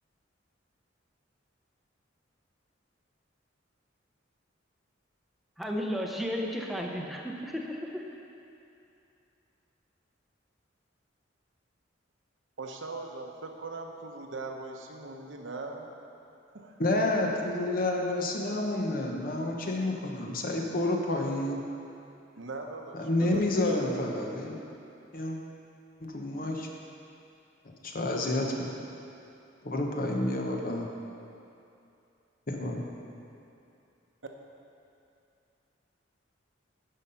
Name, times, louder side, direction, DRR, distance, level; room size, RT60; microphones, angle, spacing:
voice 1, 5.6-8.2, equal, ahead, -1 dB, 0.8 m, -34 dB
voice 2, 12.6-15.9 16.5-16.8 22.4-23.9, right 3 dB, 75° right, 2 dB, 0.9 m, -40 dB
voice 3, 16.8-21.7 23.0-24.6 25.1-25.4 26.0-26.7 27.8-28.7 29.6-30.9 32.5-32.9, left 1 dB, 45° left, 1 dB, 1.0 m, -29 dB
10.5 x 5.6 x 5.6 m, 2.7 s
head